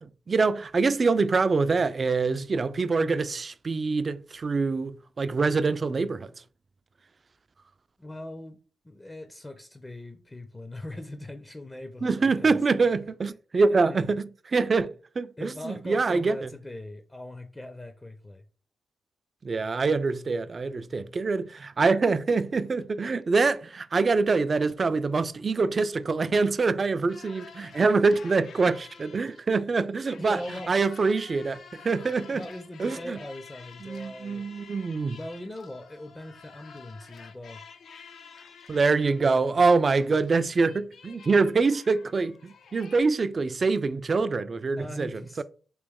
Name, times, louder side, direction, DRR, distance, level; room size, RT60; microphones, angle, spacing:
voice 1, 0.0-6.3 12.0-16.5 19.4-30.4 30.7-32.4 32.8-33.2 33.8-35.2 38.7-45.1 45.4-45.5, right 4 dB, 45° right, 0.3 m, -25 dB
voice 2, 8.0-8.6 8.8-12.6 13.8-14.1 15.4-18.4 27.7-28.2 29.4-29.7 30.2-30.9 32.3-34.6 35.1-37.6 44.8-45.4, left 1 dB, 20° left, 0.6 m, -41 dB
sound 1, 27.1-29.6 30.0-43.0, left 6 dB, 65° left, 0.5 m, -50 dB
3.0 x 3.0 x 3.5 m
supercardioid pair, 45°, 0 cm